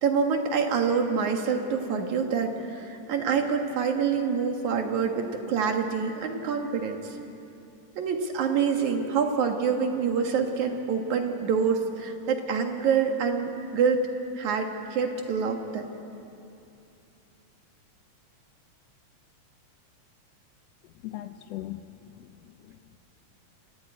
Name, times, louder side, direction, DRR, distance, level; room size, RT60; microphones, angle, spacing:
voice 1, 0.0-7.2 8.0-14.0 14.4-15.9, right 6 dB, 80° right, 4 dB, 3.1 m, -26 dB
voice 2, 21.0-23.0, left 14 dB, 75° left, 10 dB, 1.6 m, -40 dB
27.5 x 15.0 x 9.4 m, 2.7 s
omnidirectional pair, 3.3 m